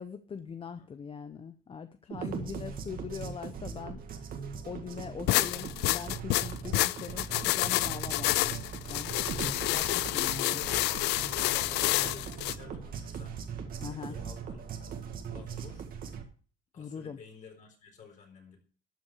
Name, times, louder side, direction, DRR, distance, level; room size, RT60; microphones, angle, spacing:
voice 1, 0.0-4.4 4.7-10.6 13.8-14.1 16.8-17.2, left 6 dB, 30° left, 10 dB, 0.7 m, -42 dB
voice 2, 2.1-2.8 6.6-7.4 10.1-13.4 13.8-15.0 15.3-15.8 16.7-18.6, left 5 dB, 50° left, 2 dB, 4.4 m, -52 dB
sound 1, 2.1-16.2, right 6 dB, 60° right, 2.0 m, -40 dB
sound 2, 5.3-12.6, left 19 dB, 90° left, 0.4 m, -29 dB
12.5 x 5.6 x 6.5 m, 0.41 s
cardioid pair, 110°, 17 cm